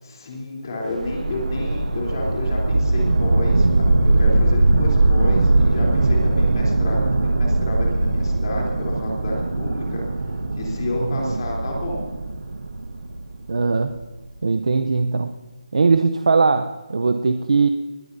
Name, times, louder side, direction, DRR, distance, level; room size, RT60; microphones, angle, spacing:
voice 1, 0.0-10.0 10.6-12.0, left 2 dB, 35° left, -2 dB, 3.4 m, -30 dB
sound 1, 0.9-14.0, right 2 dB, 80° right, 1.3 m, -20 dB
voice 2, 11.0-11.4 13.5-14.0 14.4-15.3 15.7-17.7, right 4 dB, 60° right, 7 dB, 0.7 m, -20 dB
20.0 x 17.0 x 2.7 m, 1.3 s
figure-of-eight pair, 175°, 4 cm